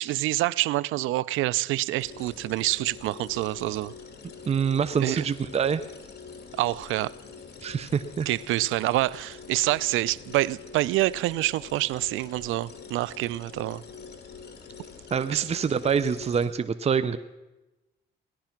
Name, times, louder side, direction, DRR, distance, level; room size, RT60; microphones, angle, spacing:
voice 1, 0.0-3.9 5.0-5.3 6.5-7.1 8.3-13.8 15.3-15.4, right 17 dB, 90° right, 0.4 m, -27 dB
sound 1, 2.0-16.5, left 5 dB, 55° left, 2.2 m, -45 dB
voice 2, 4.5-5.8 7.6-8.3 15.1-17.2, right 6 dB, 30° right, 0.6 m, -25 dB
17.5 x 11.5 x 5.9 m
cardioid pair, 90°, 20 cm